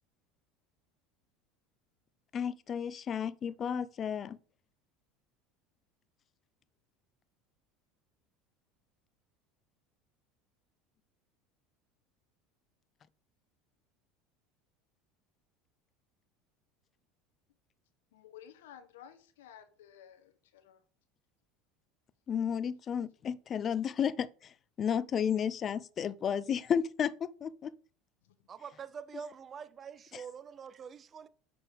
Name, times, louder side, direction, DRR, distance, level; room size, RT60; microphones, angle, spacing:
voice 1, 2.3-4.4 22.3-27.7 30.1-30.2, left 8 dB, 40° left, 0.5 m, -33 dB
voice 2, 18.1-20.8 28.2-28.3, left 10 dB, 85° left, 1.0 m, -54 dB
voice 3, 28.5-31.3, right 6 dB, 35° right, 0.5 m, -45 dB
6.6 x 5.2 x 3.5 m
hypercardioid pair, 95°, 0 cm